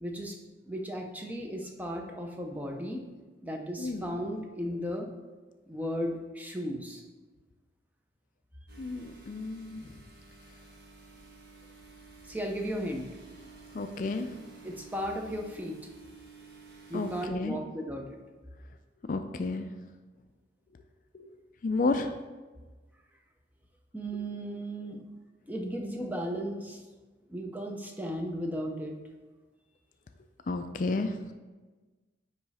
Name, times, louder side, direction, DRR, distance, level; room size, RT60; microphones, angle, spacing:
voice 1, 0.0-0.4 0.7-3.0 3.4-5.1 5.7-7.0 12.3-13.1 14.6-15.8 16.9-18.0 23.9-25.0 25.5-26.8 27.3-28.9, equal, 10° right, 1 dB, 0.6 m, -35 dB
voice 2, 3.8-4.2 8.8-9.9 13.7-14.3 16.9-17.6 19.1-19.7 21.1-21.4 21.6-22.1 30.5-31.2, left 3 dB, 45° left, 7 dB, 0.3 m, -32 dB
sound 1, 8.7-17.3, right 4 dB, 60° right, 1.1 m, -52 dB
9.5 x 3.2 x 4.1 m, 1.3 s
head